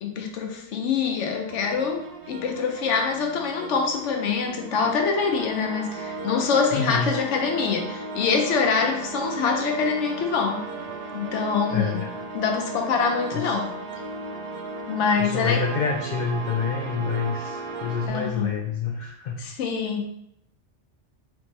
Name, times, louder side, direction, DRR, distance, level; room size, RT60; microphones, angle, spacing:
voice 1, 0.0-2.0 2.3-10.6 11.1-13.7 14.9-15.6 18.1-18.5 19.4-20.1, left 5 dB, 80° left, 3 dB, 1.0 m, -25 dB
sound 1, 1.5-18.1, right 3 dB, 60° right, 0.7 m, -36 dB
voice 2, 6.7-7.1 11.7-12.0 13.3-13.6 15.2-19.5, left 5 dB, 60° left, 1 dB, 0.5 m, -27 dB
4.1 x 3.2 x 3.2 m, 0.78 s
omnidirectional pair, 1.2 m